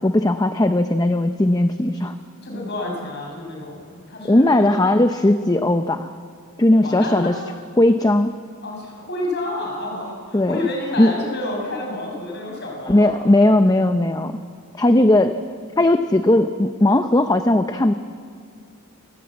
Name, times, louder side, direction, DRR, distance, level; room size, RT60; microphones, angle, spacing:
voice 1, 0.0-2.1 4.3-6.1 6.6-7.4 7.8-8.3 10.3-10.6 11.0-11.1 12.9-14.4 14.8-15.4 15.8-17.9, left 1 dB, 15° left, 8 dB, 0.6 m, -17 dB
voice 2, 2.4-4.9 6.8-7.3 8.6-13.1, left 2 dB, 50° left, 0 dB, 6.4 m, -29 dB
28.0 x 13.0 x 8.6 m, 2.3 s
head